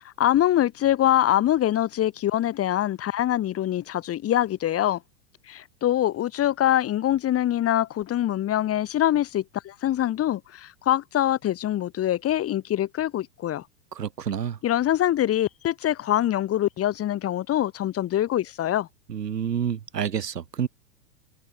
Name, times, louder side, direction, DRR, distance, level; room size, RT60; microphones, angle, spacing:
voice 1, 0.2-5.0 5.5-13.6 14.6-18.9, left 12 dB, 30° left, 3.4 m, -24 dB
voice 2, 14.0-14.6 19.1-20.7, right 8 dB, 85° right, 7.3 m, -28 dB
hypercardioid pair, 115°, 47 cm